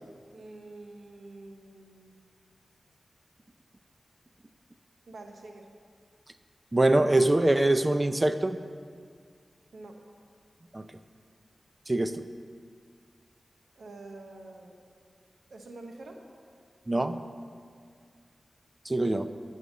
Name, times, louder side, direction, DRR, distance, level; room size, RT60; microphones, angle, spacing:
voice 1, 0.3-2.4 5.1-5.7 9.7-10.0 13.7-14.8 15.5-16.3, right 2 dB, 90° right, 3 dB, 0.9 m, -47 dB
voice 2, 6.7-8.6 10.7-10.8 11.9-12.2 16.9-17.2 18.9-19.3, right 2 dB, 30° right, 10 dB, 0.5 m, -24 dB
9.0 x 5.6 x 6.2 m, 2.1 s
cardioid pair, 45°, 0 cm